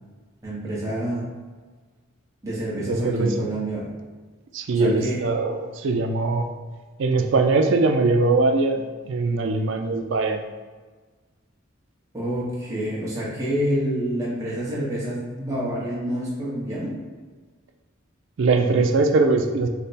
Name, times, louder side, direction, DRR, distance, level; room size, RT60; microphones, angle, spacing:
voice 1, 0.4-1.3 2.4-3.9 4.8-5.2 12.1-16.9, right 1 dB, 15° right, -7 dB, 0.9 m, -28 dB
voice 2, 2.9-3.5 4.5-6.5 7.0-10.4 18.4-19.7, right 3 dB, 60° right, 5 dB, 0.4 m, -21 dB
3.3 x 2.1 x 4.0 m, 1.4 s
head